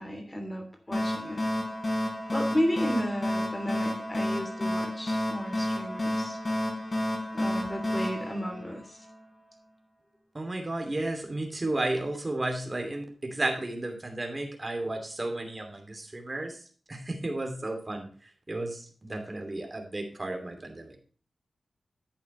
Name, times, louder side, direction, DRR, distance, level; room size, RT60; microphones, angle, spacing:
voice 1, 0.0-1.4 2.3-6.4 7.3-9.1, equal, 20° left, 4 dB, 3.1 m, -33 dB
sound 1, 0.9-9.2, left 1 dB, 40° left, 4.7 m, -31 dB
voice 2, 10.3-21.0, right 2 dB, 30° right, 3 dB, 2.8 m, -33 dB
11.0 x 8.4 x 3.2 m, 0.41 s
wide cardioid pair, 85°, 0 cm